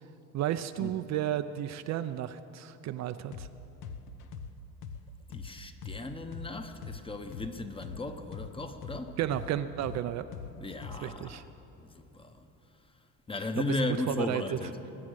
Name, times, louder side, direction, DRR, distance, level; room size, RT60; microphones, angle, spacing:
voice 1, 0.3-3.5 9.2-10.3 11.0-11.4 13.7-13.8 14.1-14.6, right 11 dB, 50° right, 0.5 m, -32 dB
sound 1, 3.3-3.5 3.8-7.5 7.8-11.2, left 6 dB, 75° left, 1.1 m, -42 dB
voice 2, 5.3-9.2 10.6-11.5 11.8-12.5 13.3-14.8, left 3 dB, 15° left, 0.9 m, -36 dB
21.0 x 8.5 x 6.4 m
cardioid pair, 115°, 36 cm